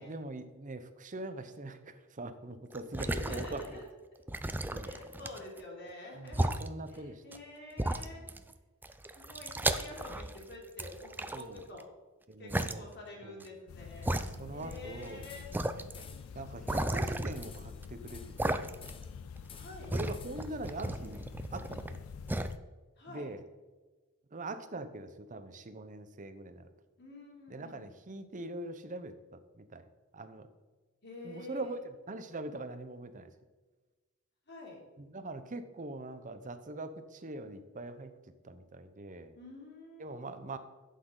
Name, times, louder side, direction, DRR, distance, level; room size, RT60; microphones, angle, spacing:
voice 1, 0.0-3.8 4.7-5.0 6.2-7.2 8.2-8.3 11.3-11.6 12.3-12.9 13.2-13.3 14.2-15.3 16.3-18.8 19.9-21.2 21.5-22.0 23.1-23.4 24.3-26.7 27.5-29.1 29.6-29.8 30.1-30.5 31.2-33.3 35.0-38.1 38.4-39.3 40.0-40.6, right 2 dB, 40° right, 10 dB, 0.8 m, -42 dB
sound 1, 2.7-3.8 4.3-5.6 6.3-6.7 7.3-7.4 7.8-8.5 8.8-10.4 10.8-11.8 12.5-12.7 13.4-13.5 14.0-14.8 15.0-15.1 15.5-15.9 16.7-17.8 18.4-19.0 19.4-22.0 22.3-22.5, right 1 dB, 10° right, 0.4 m, -34 dB
voice 2, 3.0-3.9 4.8-6.5 6.9-8.3 9.1-11.8 12.4-14.2 14.5-15.4 16.0-16.3 19.5-20.0 23.0-23.3 27.0-27.9 31.0-31.7 34.5-34.8 39.3-40.1, left 2 dB, 55° left, -2 dB, 3.1 m, -48 dB
sound 2, 13.7-22.6, left 5 dB, 80° left, 0.4 m, -47 dB
sound 3, 15.2-15.7 15.9-16.3 16.7-17.0 17.3-18.5 18.8-19.2 19.5-20.6, left 6 dB, 25° left, 0.7 m, -54 dB
11.5 x 8.4 x 3.9 m, 1.3 s
head